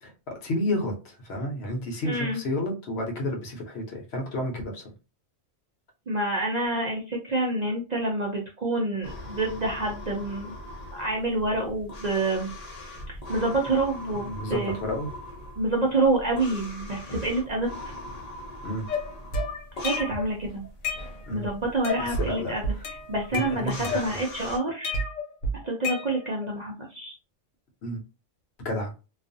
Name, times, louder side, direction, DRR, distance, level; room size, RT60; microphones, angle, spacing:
voice 1, 0.0-4.9 14.3-15.1 18.6-18.9 21.3-21.5 22.0-22.8 23.3-24.2 27.8-28.0 28.6-28.9, left 1 dB, 65° left, 2 dB, 0.9 m, -31 dB
voice 2, 2.0-2.4 6.1-10.6 10.9-12.5 13.1-14.7 15.6-17.8 19.8-20.6 21.3-22.6 23.1-25.0 25.6-27.1, right 2 dB, 50° right, -2 dB, 0.5 m, -27 dB
sound 1, 9.0-24.6, left 1 dB, 40° left, 0.6 m, -41 dB
sound 2, 18.9-20.3 20.6-21.5 21.8-22.3 22.6-24.4 24.8-26.5, left 2 dB, 85° left, 1.1 m, -31 dB
2.4 x 2.3 x 2.5 m, 0.30 s
omnidirectional pair, 1.3 m